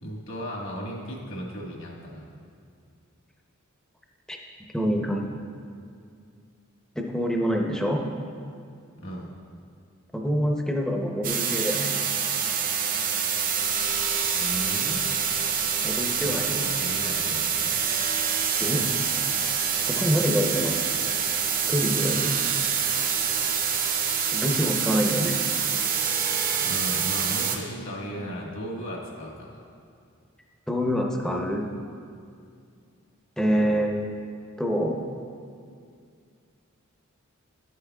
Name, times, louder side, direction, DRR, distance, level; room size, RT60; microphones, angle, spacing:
voice 1, 0.0-2.3 9.0-9.3 14.3-15.0 16.2-17.7 26.6-29.6, equal, 65° left, -3 dB, 1.5 m, -36 dB
voice 2, 4.7-5.3 7.0-8.0 10.1-11.9 15.8-16.6 18.6-18.8 19.9-20.8 21.7-22.3 24.3-25.4 30.7-31.7 33.4-34.0 34.6-35.0, equal, 5° left, 1 dB, 0.6 m, -26 dB
sound 1, 11.2-27.6, right 7 dB, 40° right, 0.6 m, -26 dB
10.5 x 8.3 x 2.3 m, 2.3 s
head